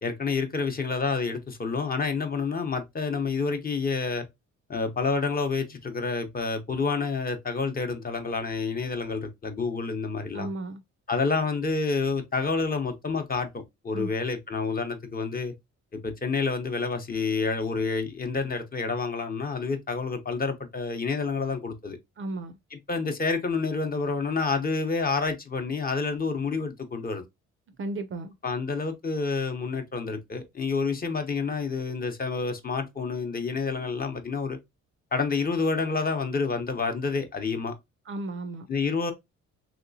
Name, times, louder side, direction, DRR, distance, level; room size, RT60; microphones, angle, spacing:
voice 1, 0.0-4.3 4.7-10.5 11.1-15.5 15.9-22.0 22.7-27.2 28.4-34.6 35.1-37.7 38.7-39.1, left 4 dB, 30° left, 0.7 m, -28 dB
voice 2, 10.3-10.8 13.9-14.1 22.2-22.6 27.8-28.4 38.1-38.7, right 2 dB, 45° right, 0.5 m, -34 dB
3.1 x 2.8 x 2.6 m
cardioid pair, 90°, 30 cm